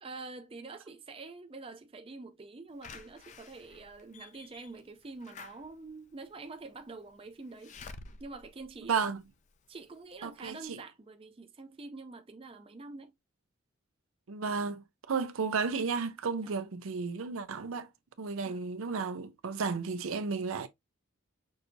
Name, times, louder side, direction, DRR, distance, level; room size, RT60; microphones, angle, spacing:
voice 1, 0.0-7.7 8.2-9.0 9.7-13.1 16.4-16.6 18.4-18.6, right 3 dB, 25° right, 0.4 m, -46 dB
Slam / Alarm, 2.8-9.6 10.1-10.2 10.4-10.5, left 4 dB, 35° left, 0.4 m, -51 dB
voice 2, 8.8-9.2 10.2-10.8 14.3-17.9 18.2-20.7, right 5 dB, 75° right, 0.6 m, -33 dB
6.1 x 2.7 x 2.6 m
head